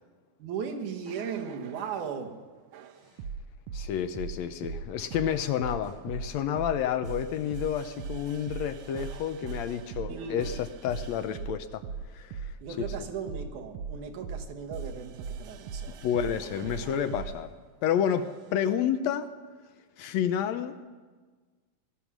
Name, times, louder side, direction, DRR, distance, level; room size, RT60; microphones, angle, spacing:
voice 1, 0.4-2.4 10.1-10.5 12.6-16.0, right 6 dB, 90° right, 3 dB, 2.8 m, -37 dB
sound 1, 1.1-2.1 2.7-17.4 18.1-18.5, right 5 dB, 70° right, 1.5 m, -39 dB
voice 2, 3.7-11.8 12.1-12.5 16.0-17.5 17.8-19.3 20.0-20.9, left 9 dB, 75° left, 10 dB, 1.8 m, -30 dB
19.5 x 12.5 x 6.1 m, 1.4 s
omnidirectional pair, 3.4 m